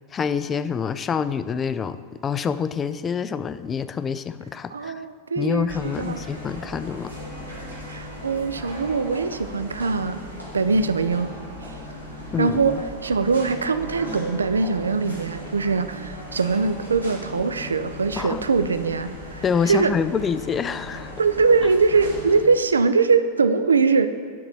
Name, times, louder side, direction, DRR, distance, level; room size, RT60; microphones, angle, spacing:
voice 1, 0.1-5.0 5.4-7.1 12.3-12.8 18.2-18.5 19.4-21.1, left 6 dB, 20° left, 13 dB, 0.3 m, -26 dB
voice 2, 4.7-5.7 6.0-6.2 7.9-10.2 10.5-11.3 12.4-12.7 13.0-19.9 21.2-24.1, right 4 dB, 75° right, 11 dB, 0.4 m, -22 dB
sound 1, 5.7-22.4, left 1 dB, 90° right, 2.4 m, -38 dB
10.5 x 3.9 x 7.0 m, 2.1 s
figure-of-eight pair, 90°, 0 cm